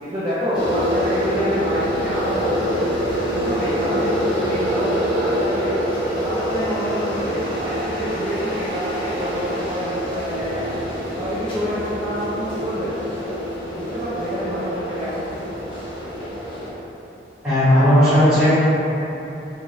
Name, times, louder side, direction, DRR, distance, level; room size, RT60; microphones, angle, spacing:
voice 1, 0.0-2.9 3.3-5.7 6.2-10.7 11.2-13.0 13.7-15.2, equal, 25° right, -12 dB, 0.4 m, -27 dB
sound 1, 0.5-16.7, equal, 25° left, 0.7 m, -25 dB
voice 2, 17.4-18.6, equal, 5° right, -17 dB, 1.3 m, -15 dB
3.0 x 2.4 x 2.6 m, 3.0 s
head